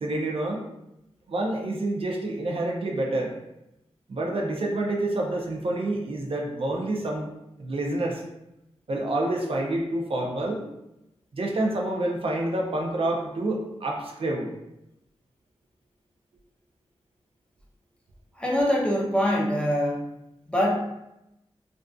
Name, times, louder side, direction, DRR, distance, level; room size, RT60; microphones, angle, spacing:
voice 1, 0.0-0.6 1.3-3.3 4.1-7.3 7.6-8.2 8.9-10.6 11.3-14.5, right 1 dB, 55° right, -1 dB, 0.5 m, -28 dB
voice 2, 18.4-20.1 20.5-20.8, equal, 10° left, -3 dB, 0.6 m, -24 dB
2.5 x 2.3 x 2.3 m, 0.88 s
cardioid pair, 60°, 11 cm